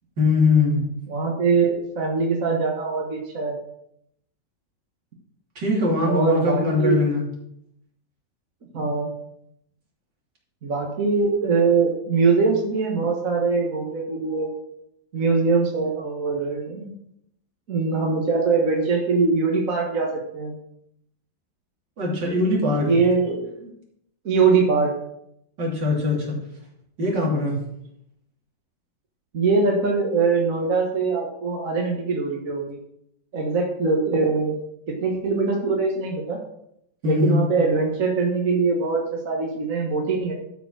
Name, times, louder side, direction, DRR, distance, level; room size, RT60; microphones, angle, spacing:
voice 1, 0.2-0.9 5.6-7.2 22.0-23.0 25.6-26.4 27.0-27.6 37.0-37.4, left 3 dB, 70° right, -3 dB, 3.6 m, -21 dB
voice 2, 1.1-3.6 6.0-7.0 8.7-9.1 10.6-14.5 15.1-16.9 17.7-20.6 22.8-23.7 24.2-24.9 29.3-32.8 33.3-34.5 34.9-36.4 37.0-40.3, right 4 dB, 50° right, 0 dB, 1.7 m, -22 dB
12.5 x 5.1 x 6.1 m, 0.75 s
omnidirectional pair, 2.0 m